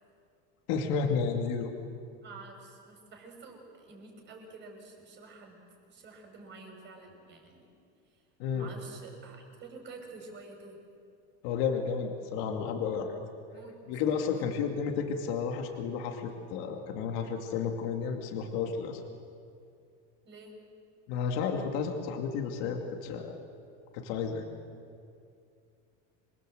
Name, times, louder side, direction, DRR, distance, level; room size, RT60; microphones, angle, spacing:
voice 1, 0.7-1.7 8.4-8.7 11.4-13.2 13.9-19.0 21.1-23.4 23.9-24.5, left 6 dB, 65° left, 3 dB, 2.5 m, -32 dB
voice 2, 2.2-7.7 8.1-8.2 8.5-10.8 13.5-13.8 14.2-14.4 20.2-20.5, right 3 dB, 35° right, 2 dB, 6.0 m, -49 dB
27.0 x 23.0 x 7.9 m, 2.4 s
cardioid pair, 155°, 33 cm